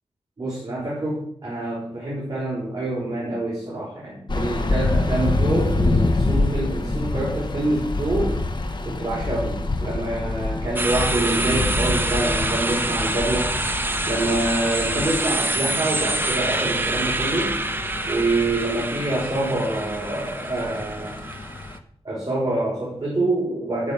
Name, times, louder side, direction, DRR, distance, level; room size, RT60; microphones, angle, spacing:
voice 1, 0.4-8.4 8.8-13.5 14.0-17.5 18.1-21.2 22.0-23.9, right 2 dB, 35° right, -6 dB, 6.0 m, -26 dB
sound 1, 4.3-21.8, left 2 dB, 45° left, 1.3 m, -27 dB
sound 2, 10.8-21.8, right 2 dB, 20° right, 0.9 m, -27 dB
15.0 x 6.3 x 7.0 m, 0.66 s
wide cardioid pair, 110°, 10 cm